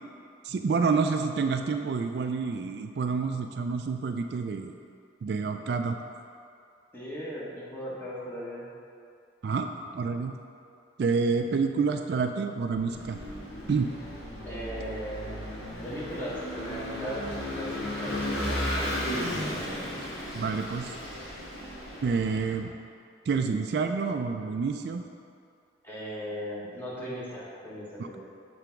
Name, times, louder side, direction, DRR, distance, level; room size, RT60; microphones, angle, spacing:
voice 1, 0.4-4.7 5.2-6.0 9.4-9.7 9.9-10.3 11.0-13.2 13.7-13.9 20.3-20.9 22.0-22.7 23.3-25.0 28.0-28.2, right 4 dB, 60° right, 6 dB, 0.3 m, -28 dB
voice 2, 6.9-8.7 14.4-15.4 15.8-19.8 25.8-28.2, equal, 10° left, -8 dB, 1.3 m, -38 dB
Vehicle / Engine, 12.7-22.5, left 1 dB, 60° left, 1.4 m, -35 dB
6.8 x 3.4 x 5.9 m, 2.4 s
head